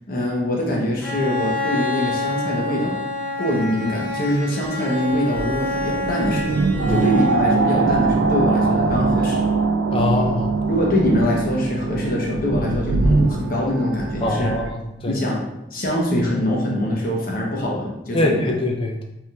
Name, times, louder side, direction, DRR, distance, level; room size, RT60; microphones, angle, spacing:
voice 1, 0.1-3.0 3.4-6.6 6.9-9.4 10.7-14.6 15.1-15.4 15.7-18.5, left 1 dB, 50° left, -2 dB, 0.9 m, -23 dB
Bowed string instrument, 1.0-7.7, left 2 dB, 10° left, 0.9 m, -28 dB
sound 1, 5.1-14.7, right 3 dB, 80° right, 0.4 m, -22 dB
voice 2, 9.9-10.5 14.2-15.2 18.1-19.0, left 2 dB, 30° left, 1 dB, 0.5 m, -23 dB
5.4 x 3.5 x 2.4 m, 0.88 s
head